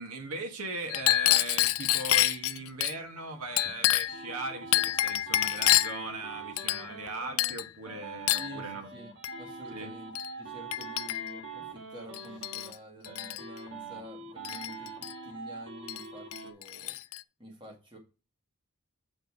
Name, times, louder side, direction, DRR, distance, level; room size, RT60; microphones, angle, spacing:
voice 1, 0.0-8.9 9.7-9.9, right 2 dB, 85° right, 1.5 m, -39 dB
Chink clink, 0.9-3.0 3.6-4.2 4.7-6.0 6.6-7.1 7.4-7.7 8.3-8.5 9.2-9.4 10.2-10.3 10.7-11.4 12.1-12.7 13.0-13.4 14.4-15.1 15.9-16.0 16.3-17.2, left 15 dB, 75° left, 0.4 m, -27 dB
sound 1, 3.2-7.5 7.9-12.7 13.0-16.5, right 4 dB, 55° right, 1.3 m, -44 dB
voice 2, 8.4-16.9 17.4-18.0, equal, 20° right, 1.8 m, -48 dB
7.8 x 4.1 x 4.8 m
head